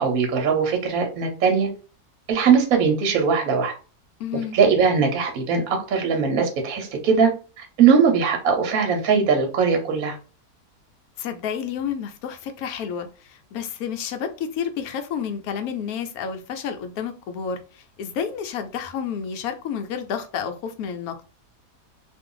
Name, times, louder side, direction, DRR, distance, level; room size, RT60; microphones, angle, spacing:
voice 1, 0.0-1.7 2.3-3.7 4.5-7.3 7.6-10.1, right 6 dB, 65° right, 1.1 m, -20 dB
voice 2, 4.2-4.6 11.2-21.2, left 7 dB, 70° left, 1.0 m, -30 dB
2.6 x 2.4 x 3.7 m
omnidirectional pair, 1.7 m